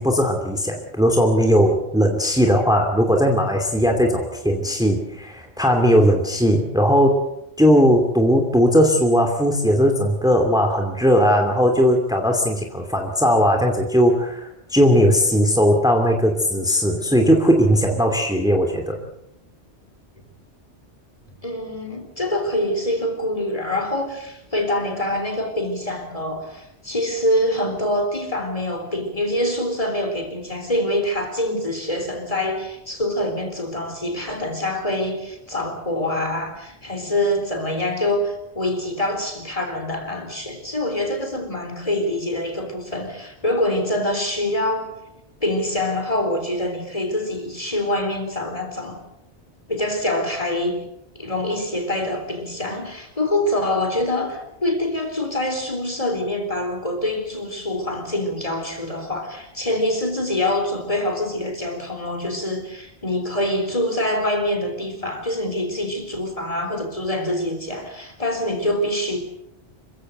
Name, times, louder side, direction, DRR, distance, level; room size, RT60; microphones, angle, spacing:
voice 1, 0.0-7.2 7.6-19.0, equal, 5° right, 3 dB, 2.6 m, -18 dB
voice 2, 21.4-45.0 45.4-49.0 49.7-50.9 51.2-69.2, left 1 dB, 30° left, 5 dB, 4.1 m, -25 dB
27.0 x 15.5 x 8.0 m, 0.82 s
omnidirectional pair, 1.2 m